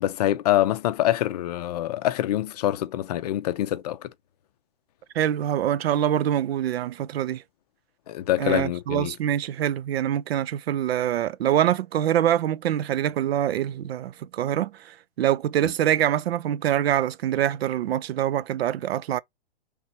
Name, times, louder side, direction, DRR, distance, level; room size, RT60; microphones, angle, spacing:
voice 1, 0.0-4.1 8.1-9.1, left 13 dB, 45° left, 0.5 m, -25 dB
voice 2, 5.1-7.4 8.4-19.2, right 11 dB, 80° right, 0.5 m, -25 dB
3.4 x 2.8 x 4.3 m
hypercardioid pair, 150°, 30 cm